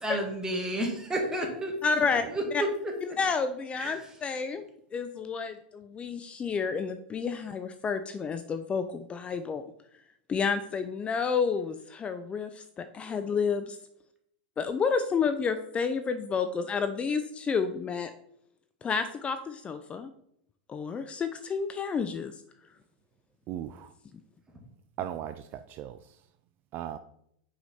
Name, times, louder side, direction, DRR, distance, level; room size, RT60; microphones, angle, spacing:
voice 1, 0.0-1.7 2.3-2.7 3.7-4.0, right 1 dB, 15° right, 2 dB, 1.8 m, -31 dB
voice 2, 1.8-2.2 2.5-2.6 3.0-4.6 4.9-9.6 10.3-13.8 14.6-18.1 18.8-20.1 20.7-22.3, left 5 dB, 25° left, 9 dB, 0.5 m, -30 dB
voice 3, 23.5-23.9 25.0-26.3 26.7-27.0, right 11 dB, 40° right, 10 dB, 0.4 m, -38 dB
6.3 x 4.8 x 4.1 m, 0.72 s
hypercardioid pair, 105°, 5 cm